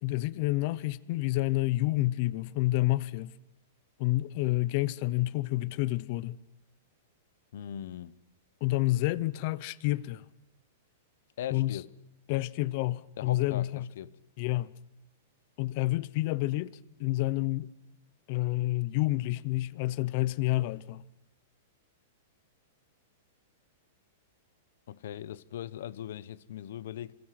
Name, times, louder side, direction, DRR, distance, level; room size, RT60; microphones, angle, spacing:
voice 1, 0.0-3.3 4.0-6.4 8.6-10.3 11.5-11.8 12.3-13.9 14.4-14.7 15.6-17.7 18.3-21.0, left 17 dB, 45° left, 0.9 m, -29 dB
voice 2, 7.5-8.2 11.4-11.9 13.2-14.1 24.9-27.2, left 11 dB, 65° left, 1.0 m, -40 dB
26.5 x 26.0 x 6.0 m
supercardioid pair, 155°, 0 cm